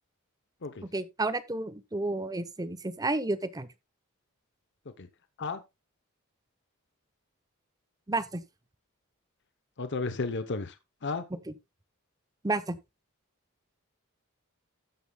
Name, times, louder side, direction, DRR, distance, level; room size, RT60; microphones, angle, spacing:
voice 1, 0.9-3.7 8.1-8.4 12.4-12.7, right 2 dB, 15° right, 0.7 m, -31 dB
voice 2, 9.8-10.8 11.0-11.2, left 4 dB, 55° left, 0.8 m, -33 dB
13.0 x 9.0 x 2.3 m
head